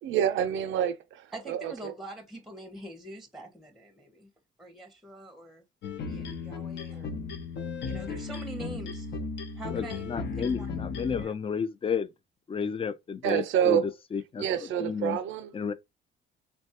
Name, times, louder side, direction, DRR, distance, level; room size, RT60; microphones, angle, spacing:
voice 1, 0.0-1.9 13.2-13.9 14.4-15.5, right 9 dB, 80° right, 0.5 m, -28 dB
voice 2, 1.3-4.3 4.6-5.6 6.1-7.1 7.8-9.1 9.6-10.8 11.2-11.4, right 1 dB, ahead, 0.7 m, -44 dB
sound 1, 5.8-11.2, left 4 dB, 65° left, 0.7 m, -35 dB
voice 3, 9.7-12.1 12.5-13.8 14.1-14.4 14.8-15.2 15.5-15.7, left 6 dB, 30° left, 0.4 m, -32 dB
3.2 x 2.2 x 2.7 m
cardioid pair, 90°, 20 cm